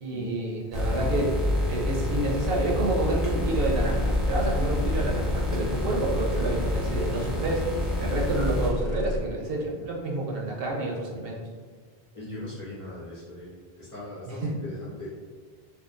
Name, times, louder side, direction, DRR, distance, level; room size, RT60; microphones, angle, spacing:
voice 1, 0.0-1.3 1.7-7.7 8.0-11.4, right 2 dB, 70° right, -2 dB, 0.7 m, -29 dB
sound 1, 0.7-8.7, left 1 dB, ahead, 0.5 m, -28 dB
sound 2, 3.5-9.2, left 1 dB, 75° left, 0.8 m, -32 dB
voice 2, 12.1-13.5 13.8-15.1, left 1 dB, 35° left, -8 dB, 0.8 m, -39 dB
2.7 x 2.3 x 2.4 m, 1.5 s
omnidirectional pair, 1.0 m